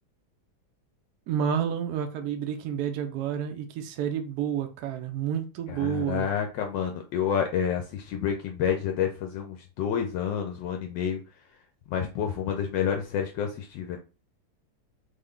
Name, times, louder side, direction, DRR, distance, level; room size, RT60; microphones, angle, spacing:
voice 1, 1.3-6.3, right 8 dB, 75° right, 0.9 m, -30 dB
voice 2, 5.7-11.2 11.9-14.0, left 8 dB, 75° left, 1.2 m, -29 dB
3.7 x 2.2 x 3.5 m
omnidirectional pair, 2.1 m